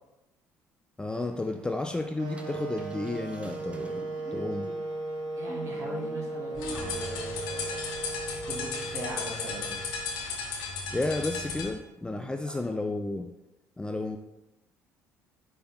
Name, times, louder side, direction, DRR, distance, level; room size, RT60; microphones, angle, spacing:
voice 1, 1.0-4.1 4.3-4.7 10.9-13.3 13.8-14.2, left 2 dB, 10° left, 6 dB, 0.4 m, -32 dB
sound 1, 1.3-7.4, right 1 dB, 15° right, 0.7 m, -47 dB
sound 2, 2.2-10.2, right 2 dB, 60° right, 1.1 m, -37 dB
voice 2, 5.4-7.8 8.4-9.7 12.4-12.6, right 2 dB, 40° right, -2 dB, 2.0 m, -40 dB
sound 3, 6.6-11.7, left 4 dB, 65° left, 1.0 m, -35 dB
5.0 x 4.5 x 4.1 m, 0.96 s
hypercardioid pair, 55°, 8 cm